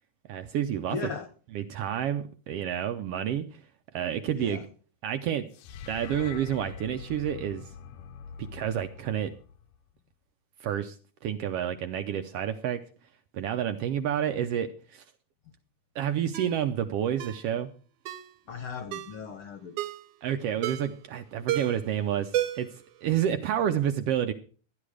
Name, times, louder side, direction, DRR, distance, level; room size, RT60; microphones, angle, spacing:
voice 1, 0.3-1.0 1.5-3.6 3.9-4.6 5.0-5.4 5.9-7.6 8.5-9.3 10.6-10.9 11.2-12.8 13.3-15.0 15.9-17.7 20.2-22.3 22.6-22.7 23.0-24.3, right 10 dB, 75° right, 8 dB, 1.4 m, -29 dB
voice 2, 0.9-1.3 4.3-4.6 18.5-19.8, left 5 dB, 60° left, 8 dB, 1.6 m, -37 dB
sound 1, 5.5-9.9, left 7 dB, 85° left, 2.1 m, -44 dB
Ringtone, 16.3-16.6 17.2-17.4 18.1-18.3 18.9-19.2 19.8-20.1 20.6-21.0 21.5-21.9 22.3-22.8 23.1-23.2, right 13 dB, 90° right, 2.2 m, -32 dB
13.0 x 10.5 x 4.9 m, 0.40 s
omnidirectional pair, 3.3 m